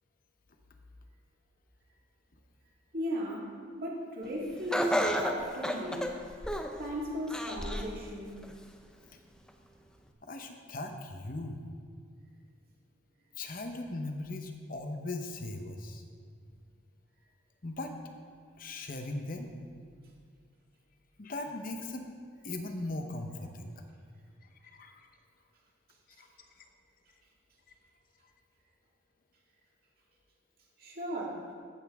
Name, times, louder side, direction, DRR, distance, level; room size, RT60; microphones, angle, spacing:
voice 1, 2.9-6.1 6.8-8.4 30.8-31.4, equal, 50° right, -3 dB, 2.0 m, -36 dB
Laughter, 4.7-6.8 7.3-7.9 8.4-8.5 9.5-9.6, equal, 5° left, 0.5 m, -31 dB
voice 2, 10.2-11.6 13.4-16.0 17.6-17.9 18.6-19.5 21.2-22.1 22.4-23.7 24.7-25.0 26.2-26.3, left 2 dB, 45° left, 5 dB, 0.9 m, -38 dB
15.0 x 8.2 x 3.6 m, 2.1 s
head